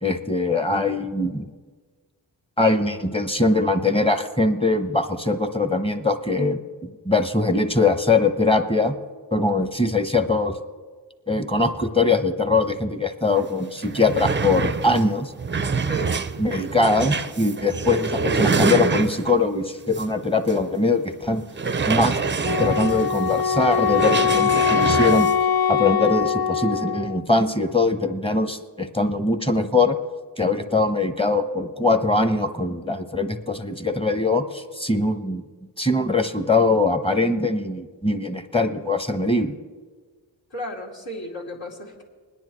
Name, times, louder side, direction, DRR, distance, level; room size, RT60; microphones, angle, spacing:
voice 1, 0.0-1.5 2.6-9.0 9.3-10.6 11.3-15.3 16.4-21.4 21.9-22.1 22.6-25.3 25.7-30.0 30.4-35.4 35.8-39.6, left 3 dB, 10° left, 8 dB, 0.8 m, -22 dB
sound 1, 13.4-13.5 13.7-19.4 19.9-20.1 20.5-20.6 21.5-25.4, right 5 dB, 25° right, 0.4 m, -26 dB
voice 2, 15.8-16.2 40.5-42.0, equal, 75° left, -5 dB, 2.5 m, -34 dB
Wind instrument woodwind instrument, 22.4-27.3, left 7 dB, 55° left, 0.5 m, -22 dB
21.5 x 10.0 x 3.1 m, 1.5 s
cardioid pair, 50°, 46 cm